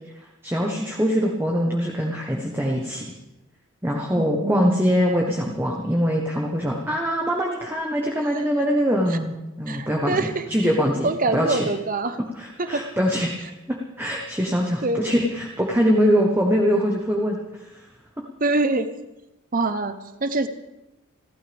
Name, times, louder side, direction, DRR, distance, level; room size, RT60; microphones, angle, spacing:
voice 1, 0.4-3.0 3.8-11.7 12.4-17.8, equal, 10° right, -1 dB, 1.3 m, -23 dB
voice 2, 4.2-5.1 8.2-8.4 9.7-10.5 11.0-12.2 12.6-12.8 14.8-15.0 18.4-18.9 19.5-20.5, right 3 dB, 40° right, 10 dB, 0.9 m, -25 dB
29.0 x 12.5 x 3.5 m, 1.0 s
head